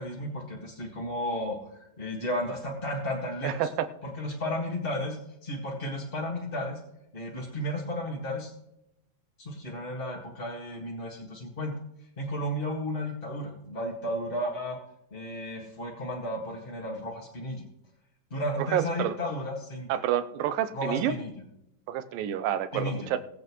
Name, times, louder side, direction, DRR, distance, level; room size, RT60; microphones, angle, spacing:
voice 1, 0.0-3.7 4.0-6.8 7.1-8.5 9.4-11.7 12.2-14.8 15.1-17.6 18.3-19.9 20.7-21.4 22.7-23.1, left 1 dB, 25° left, -2 dB, 1.2 m, -33 dB
voice 2, 3.4-3.9 18.6-19.2 19.9-21.1 21.9-23.2, right 11 dB, 85° right, 12 dB, 2.5 m, -28 dB
20.5 x 8.0 x 3.1 m, 0.82 s
omnidirectional pair, 3.9 m